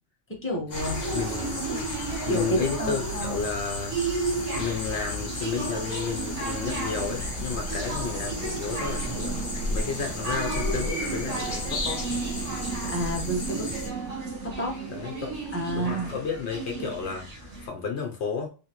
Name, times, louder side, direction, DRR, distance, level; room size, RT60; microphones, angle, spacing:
voice 1, 0.3-1.0 2.3-3.4 12.9-13.8 14.4-14.8 15.5-16.1, right 1 dB, 10° left, 1.0 m, -30 dB
sound 1, 0.7-13.9, left 2 dB, 40° left, 0.9 m, -34 dB
sound 2, 0.8-17.7, right 3 dB, 70° right, 1.4 m, -34 dB
voice 2, 1.1-1.6 2.2-4.0 4.6-9.4 9.7-12.2 14.9-15.4 15.7-18.5, left 5 dB, 65° left, 1.0 m, -32 dB
sound 3, 4.8-15.9, right 7 dB, 85° right, 0.9 m, -41 dB
3.4 x 2.8 x 3.0 m
omnidirectional pair, 1.3 m